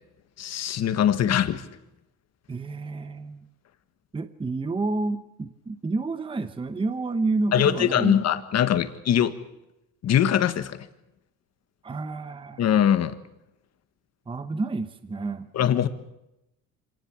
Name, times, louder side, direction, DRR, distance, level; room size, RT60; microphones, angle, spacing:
voice 1, 0.4-1.6 7.5-9.3 10.0-10.8 12.6-13.2 15.5-15.9, left 10 dB, 50° left, 1.6 m, -22 dB
voice 2, 2.5-3.5 4.1-8.3 11.8-12.7 14.3-15.5, right 3 dB, 15° right, 0.9 m, -29 dB
25.5 x 18.5 x 7.2 m
cardioid pair, 130°, 34 cm